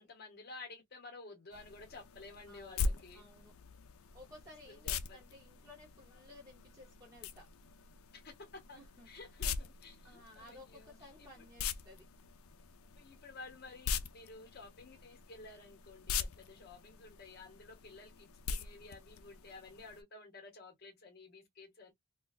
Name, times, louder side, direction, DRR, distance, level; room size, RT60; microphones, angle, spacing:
voice 1, 0.0-3.3 4.7-5.2 8.1-8.8 9.0-11.4 13.0-21.9, left 3 dB, 45° left, 0.9 m, -53 dB
sound 1, 1.5-20.0, left 5 dB, 85° left, 0.5 m, -43 dB
voice 2, 2.5-3.5 4.1-7.5 8.8-9.1 10.0-12.0, left 1 dB, 15° right, 0.9 m, -56 dB
2.4 x 2.2 x 4.0 m
head